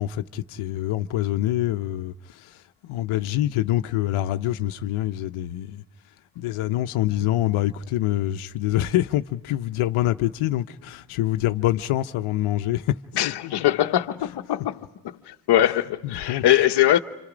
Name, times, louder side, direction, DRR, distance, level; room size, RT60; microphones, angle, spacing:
voice 1, 0.0-5.8 6.4-12.9 13.2-13.5 16.0-16.4, left 14 dB, 85° left, 0.8 m, -25 dB
voice 2, 13.1-14.8 15.0-17.0, left 12 dB, 55° left, 0.9 m, -21 dB
29.5 x 26.5 x 5.0 m
cardioid pair, 165°, 49 cm